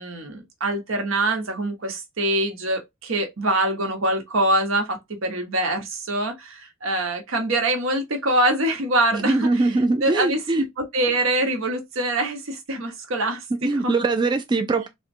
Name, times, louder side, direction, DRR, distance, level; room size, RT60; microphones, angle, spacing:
voice 1, 0.0-9.8 10.0-13.9, right 1 dB, 80° right, 1.0 m, -24 dB
voice 2, 9.1-10.6 13.6-14.9, right 3 dB, 20° right, 0.3 m, -22 dB
3.6 x 2.1 x 2.6 m
head